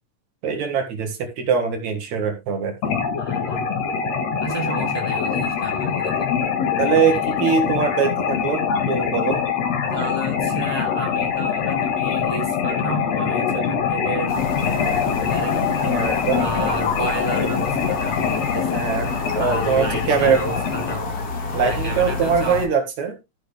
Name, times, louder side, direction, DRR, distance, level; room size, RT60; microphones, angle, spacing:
voice 1, 0.4-2.7 6.8-9.4 15.8-16.4 18.7-19.1 19.3-20.4 21.5-23.2, right 6 dB, 65° right, 2.9 m, -22 dB
sound 1, 2.8-20.9, left 7 dB, 60° left, 2.5 m, -24 dB
voice 2, 3.2-3.7 4.4-6.3 7.0-7.2 9.9-15.8 16.3-18.9 19.3-21.2 21.6-22.7, right 2 dB, 10° left, 2.5 m, -31 dB
sound 2, 14.3-22.7, left 3 dB, 40° left, 1.6 m, -29 dB
14.0 x 6.1 x 3.4 m
omnidirectional pair, 3.6 m